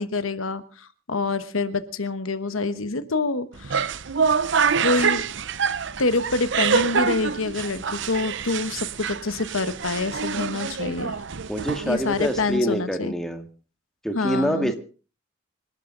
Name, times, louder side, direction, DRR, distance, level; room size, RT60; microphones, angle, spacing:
voice 1, 0.0-3.8 4.8-5.2 6.0-11.1 11.8-13.1 14.1-14.7, left 3 dB, 85° left, 12 dB, 1.2 m, -26 dB
sound 1, 3.5-12.6, right 6 dB, 60° right, 0.8 m, -26 dB
voice 2, 11.5-13.4 14.0-14.8, equal, ahead, 5 dB, 1.8 m, -26 dB
26.0 x 12.0 x 3.9 m, 0.37 s
head